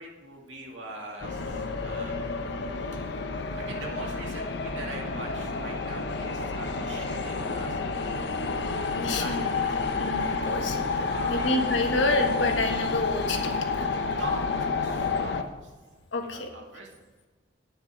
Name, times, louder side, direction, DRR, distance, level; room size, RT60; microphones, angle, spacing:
voice 1, 0.0-2.6 3.6-8.4 8.7-9.9 11.1-11.5 14.2-15.6 16.2-16.9, right 2 dB, 90° right, 0 dB, 2.2 m, -42 dB
sound 1, 1.2-15.4, left 4 dB, 65° left, 0.8 m, -30 dB
voice 2, 8.9-9.4 10.0-13.9 16.1-16.5, left 2 dB, 85° left, 4 dB, 1.4 m, -29 dB
9.5 x 9.2 x 4.8 m, 1.3 s
head